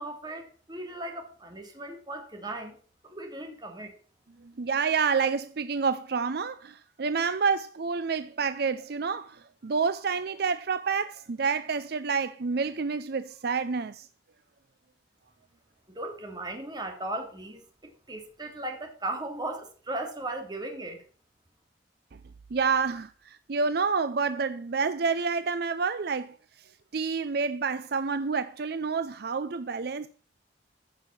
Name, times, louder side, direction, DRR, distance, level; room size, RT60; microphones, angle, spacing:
voice 1, 0.0-2.8 3.0-3.9 15.9-21.0, right 2 dB, 25° right, 3.1 m, -37 dB
voice 2, 4.4-14.1 22.1-22.2 22.5-30.1, right 5 dB, 60° right, 0.6 m, -29 dB
14.5 x 6.5 x 5.9 m
head